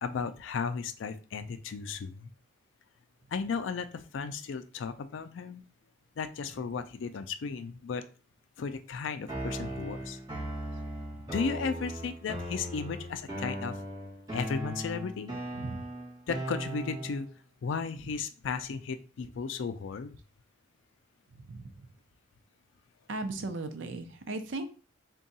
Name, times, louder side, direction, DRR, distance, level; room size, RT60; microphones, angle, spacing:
voice 1, 0.0-2.3 3.3-5.6 6.2-8.1 8.6-10.2 11.3-13.8 14.3-15.3 16.3-17.3 17.6-20.1, left 5 dB, 70° left, 10 dB, 0.4 m, -35 dB
sound 1, 9.3-17.3, right 1 dB, 20° right, 1.0 m, -38 dB
voice 2, 23.1-24.7, right 2 dB, 70° right, 8 dB, 0.5 m, -36 dB
3.6 x 2.3 x 4.0 m, 0.37 s
head